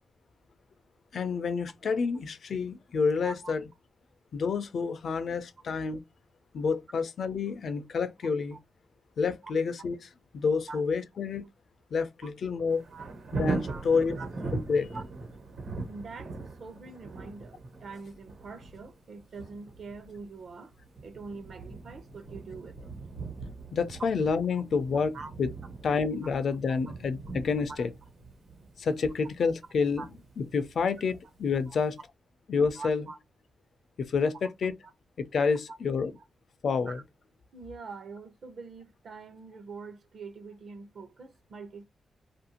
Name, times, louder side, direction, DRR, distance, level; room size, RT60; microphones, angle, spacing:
voice 1, 1.1-3.6 4.3-6.0 6.5-8.6 9.2-10.0 10.3-11.5 11.9-12.9 13.3-14.2 14.5-15.0 23.7-25.5 25.8-27.9 28.8-30.0 30.4-32.0 32.5-33.1 34.0-34.7 35.2-36.1 36.6-37.0, left 5 dB, 55° left, 0.4 m, -28 dB
voice 2, 3.2-3.5 8.5-8.6 10.7-10.8 12.2-12.3 12.9-13.1 13.7-13.8 14.2-14.3 14.9-15.0 15.8-20.7 21.0-22.9 25.1-25.3 26.9-27.0 27.7-27.9 30.0-30.1 31.7-31.8 32.8-33.2 34.8-34.9 35.7-35.8 36.2-36.3 36.9-37.0 37.5-41.9, right 4 dB, 55° right, 0.7 m, -44 dB
Thunder, 12.7-31.5 31.9-32.0, right 3 dB, 75° right, 1.2 m, -40 dB
2.7 x 2.5 x 2.8 m
wide cardioid pair, 155°, 0 cm